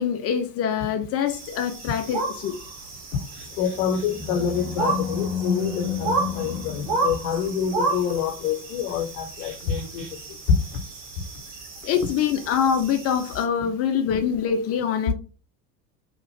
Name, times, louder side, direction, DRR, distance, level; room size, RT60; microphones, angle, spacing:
voice 1, 0.0-2.5 11.9-15.1, left 8 dB, 30° left, 0.4 m, -24 dB
sound 1, 1.3-13.4, right 3 dB, 50° right, 1.6 m, -32 dB
Animal, 3.3-7.8, left 7 dB, 30° right, 1.7 m, -31 dB
voice 2, 3.6-10.1 10.5-10.6, left 7 dB, 65° left, 0.7 m, -26 dB
2.8 x 2.5 x 3.1 m
hypercardioid pair, 80°, 48 cm